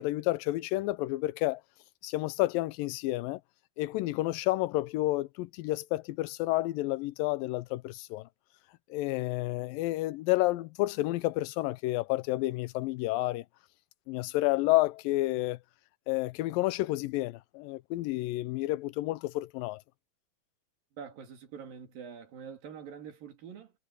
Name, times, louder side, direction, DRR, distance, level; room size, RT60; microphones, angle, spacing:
voice 1, 0.0-1.6 2.0-3.4 3.8-8.3 8.9-13.4 14.1-15.6 16.1-19.8, left 18 dB, 85° left, 2.3 m, -30 dB
voice 2, 21.0-23.7, right 7 dB, 80° right, 4.6 m, -45 dB
omnidirectional pair, 4.0 m